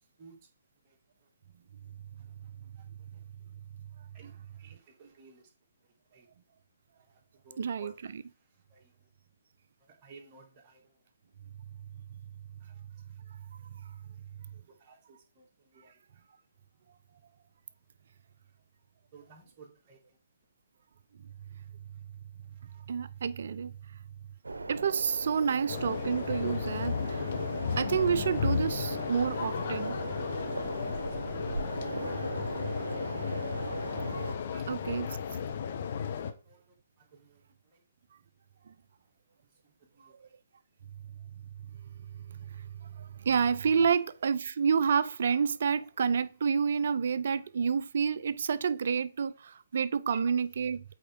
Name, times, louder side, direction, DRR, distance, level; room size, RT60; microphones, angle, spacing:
voice 1, 4.6-5.4 7.5-7.9 10.0-10.4 19.1-20.0 30.8-30.9 34.5-34.9 37.2-37.3, right 3 dB, 30° right, 2.4 m, -52 dB
voice 2, 7.6-8.2 12.1-12.2 13.3-14.0 21.2-21.3 22.7-24.0 24.7-27.3 27.8-30.0 31.4-31.5 34.7-35.2 38.7-38.8 40.0-40.3 41.6-41.7 42.0-50.8, right 6 dB, 60° right, 0.6 m, -30 dB
sound 1, 24.4-34.4, right 3 dB, 80° right, 0.9 m, -38 dB
sound 2, 25.7-36.3, left 7 dB, 50° left, 0.9 m, -34 dB
8.3 x 4.4 x 3.8 m
figure-of-eight pair, 135°, 0 cm